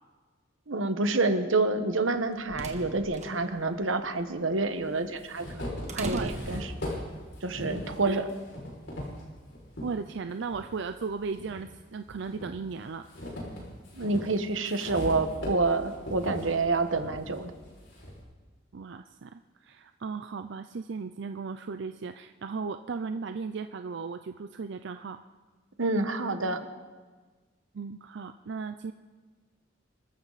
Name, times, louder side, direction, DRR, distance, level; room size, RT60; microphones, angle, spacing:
voice 1, 0.7-6.7 7.4-8.2 13.9-17.5 25.8-26.7, right 3 dB, 90° right, 8 dB, 1.3 m, -28 dB
sound 1, 2.0-7.3, right 2 dB, 40° right, 1.6 m, -41 dB
sound 2, 3.0-3.1 4.2-4.3 4.8-9.9 10.4-11.6 12.1-18.2, left 1 dB, 70° left, 5.9 m, -39 dB
voice 2, 9.8-13.0 18.7-25.2 27.7-28.9, right 4 dB, 65° right, 9 dB, 0.5 m, -36 dB
25.0 x 14.0 x 4.1 m, 1.4 s
head